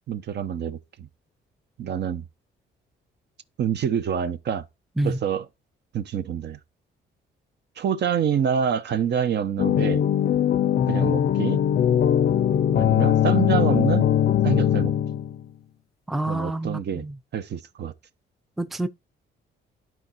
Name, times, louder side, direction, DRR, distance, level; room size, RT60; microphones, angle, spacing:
voice 1, 0.1-1.1 1.8-2.2 3.6-4.6 5.0-5.5 5.9-6.6 7.8-10.0 10.9-11.6 12.7-14.1 14.4-14.9 16.3-17.0 17.3-17.9, right 8 dB, 60° right, 0.8 m, -26 dB
sound 1, 9.6-15.4, left 10 dB, 55° left, 0.5 m, -21 dB
voice 2, 16.1-17.1 18.6-18.9, right 1 dB, ahead, 0.4 m, -27 dB
12.0 x 4.6 x 2.9 m
cardioid pair, 90°, 20 cm